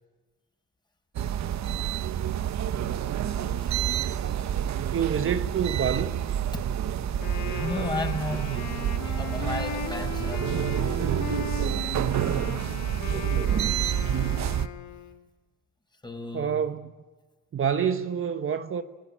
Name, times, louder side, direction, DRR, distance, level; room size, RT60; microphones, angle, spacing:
sound 1, 1.1-14.7, right 10 dB, 65° right, 1.2 m, -28 dB
voice 1, 3.3-3.9 6.5-6.6 7.1-10.9 16.0-16.6, left 2 dB, 15° left, 5.4 m, -35 dB
voice 2, 4.9-6.2 13.1-13.7 16.3-16.9 17.5-18.8, right 8 dB, 45° right, 1.1 m, -28 dB
Wind instrument woodwind instrument, 7.1-15.2, left 8 dB, 70° left, 2.2 m, -38 dB
29.0 x 20.5 x 8.7 m
cardioid pair, 90°, 30 cm